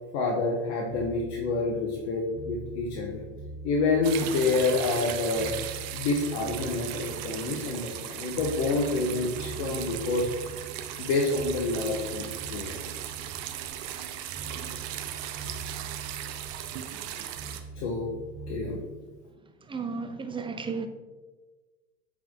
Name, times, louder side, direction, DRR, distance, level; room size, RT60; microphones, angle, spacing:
voice 1, 0.1-3.2 3.6-5.6 5.9-10.5 11.0-12.8 17.8-18.1 18.5-18.8, left 3 dB, 70° left, 1.2 m, -28 dB
sound 1, 0.9-18.8, right 4 dB, 35° right, 1.8 m, -43 dB
sound 2, 4.0-17.6, right 11 dB, 65° right, 0.8 m, -37 dB
voice 2, 19.6-20.9, right 5 dB, 15° right, 0.6 m, -33 dB
8.0 x 3.9 x 3.8 m
hypercardioid pair, 100°, 37 cm